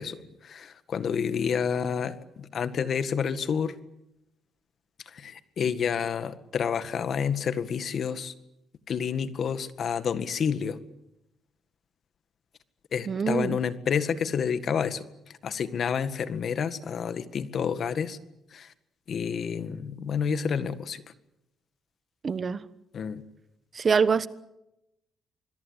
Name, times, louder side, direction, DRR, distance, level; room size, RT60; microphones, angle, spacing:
voice 1, 0.0-3.7 5.1-8.3 8.9-10.8 12.9-15.0 15.4-18.2 18.5-18.7 19.1-21.0 22.9-23.2, left 7 dB, 55° left, 12 dB, 1.8 m, -29 dB
voice 2, 13.1-13.6 22.2-22.6 23.7-24.3, right 5 dB, 40° right, 15 dB, 1.1 m, -24 dB
26.5 x 21.5 x 8.2 m, 0.88 s
cardioid pair, 90°, 0 cm